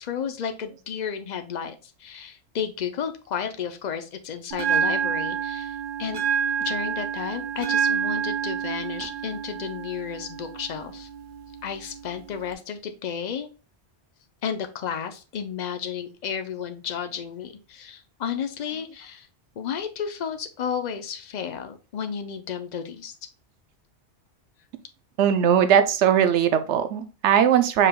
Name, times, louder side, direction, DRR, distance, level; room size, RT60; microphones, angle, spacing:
voice 1, 0.0-6.2 6.6-11.1 11.6-13.5 14.4-19.3 19.6-23.1, left 7 dB, 50° left, 8 dB, 0.6 m, -32 dB
Bell, 4.5-12.5, right 7 dB, 50° right, 0.9 m, -28 dB
voice 2, 25.2-27.9, right 9 dB, 85° right, 9 dB, 0.9 m, -19 dB
4.9 x 4.7 x 2.3 m, 0.32 s
omnidirectional pair, 1.2 m